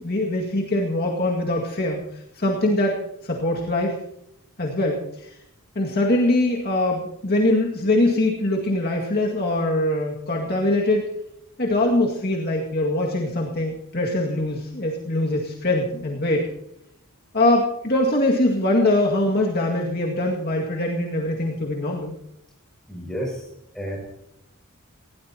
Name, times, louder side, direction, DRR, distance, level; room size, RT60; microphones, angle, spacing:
voice 1, 0.0-4.0 4.6-5.3 5.8-11.1 11.6-16.5 17.3-22.1, left 1 dB, 50° left, -1 dB, 2.0 m, -23 dB
voice 2, 22.9-23.4 23.7-24.0, equal, 5° left, -2 dB, 6.4 m, -30 dB
19.5 x 16.5 x 2.9 m, 0.78 s
head